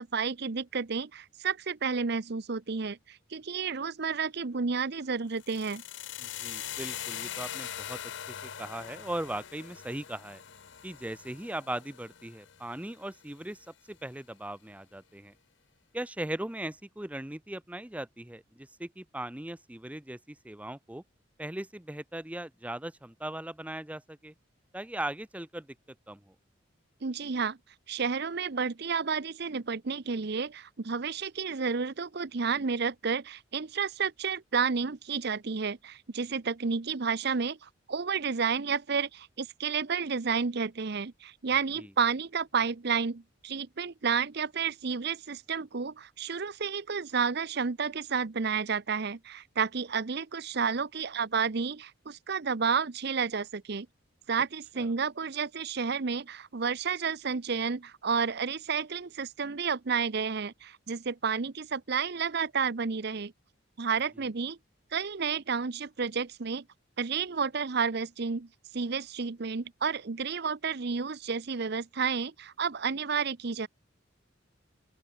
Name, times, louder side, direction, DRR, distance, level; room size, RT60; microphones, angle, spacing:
voice 1, 0.0-5.8 27.0-27.6 27.9-53.9 54.3-63.3 63.8-64.6 64.9-66.6 67.0-68.5 68.7-73.7, right 5 dB, 55° right, 0.7 m, -31 dB
sound 1, 5.3-13.4, left 10 dB, 60° left, 0.8 m, -42 dB
voice 2, 6.2-8.0 8.3-10.4 10.8-15.3 15.9-21.0 21.4-24.3 24.7-25.7 26.1-26.3 41.8-41.9 54.8-54.9 64.2-64.3, right 1 dB, 5° right, 0.6 m, -39 dB
open air
head